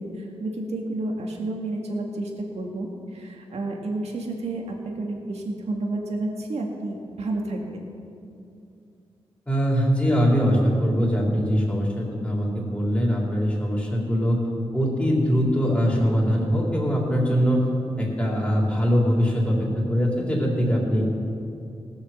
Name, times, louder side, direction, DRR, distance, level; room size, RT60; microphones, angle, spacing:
voice 1, 0.0-7.9, right 2 dB, 85° right, 0 dB, 2.0 m, -30 dB
voice 2, 9.5-14.4 14.7-17.7 18.0-21.0, equal, 10° left, -3 dB, 3.6 m, -22 dB
18.0 x 6.8 x 7.2 m, 2.6 s
cardioid pair, 85°, 11 cm